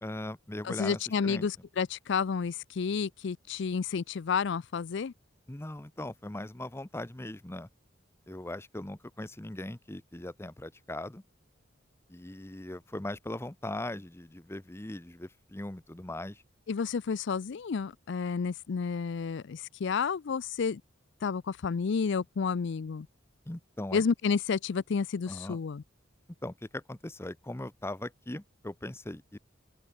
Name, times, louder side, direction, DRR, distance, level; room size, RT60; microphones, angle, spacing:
voice 1, 0.0-1.5 5.5-7.7 8.3-11.2 12.1-16.4 23.5-24.0 25.3-25.6 26.4-29.4, left 1 dB, 15° left, 0.8 m, -39 dB
voice 2, 0.6-5.1 16.7-20.8 21.2-23.1 23.9-25.8, left 5 dB, 65° left, 0.4 m, -31 dB
open air
head